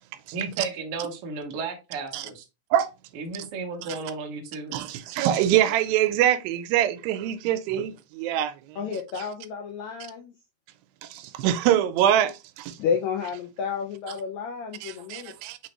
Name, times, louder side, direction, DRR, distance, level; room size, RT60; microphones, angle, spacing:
voice 1, 0.3-2.4 3.1-4.7 7.7-7.8, right 4 dB, 70° right, 1.3 m, -33 dB
voice 2, 4.7-8.8 11.0-12.8 14.8-15.6, right 11 dB, 90° right, 2.3 m, -24 dB
voice 3, 8.8-10.3 12.8-15.3, left 6 dB, 85° left, 1.6 m, -31 dB
5.8 x 3.1 x 2.9 m
omnidirectional pair, 4.0 m